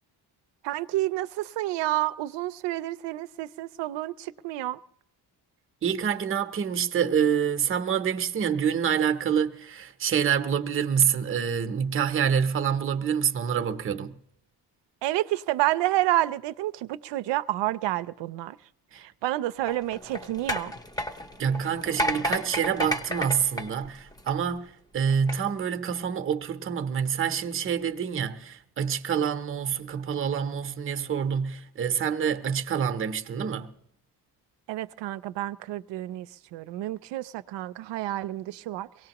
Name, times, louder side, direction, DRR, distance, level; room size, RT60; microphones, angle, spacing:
voice 1, 0.6-4.8 15.0-18.6 18.9-20.7 34.7-39.1, right 15 dB, 90° right, 0.6 m, -29 dB
voice 2, 5.8-14.1 18.9-19.0 21.4-33.7, right 7 dB, 30° right, 0.7 m, -27 dB
sound 1, 19.6-24.5 25.1-25.4, equal, 10° left, 0.6 m, -31 dB
23.0 x 18.0 x 2.9 m
cardioid pair, 170°, 41 cm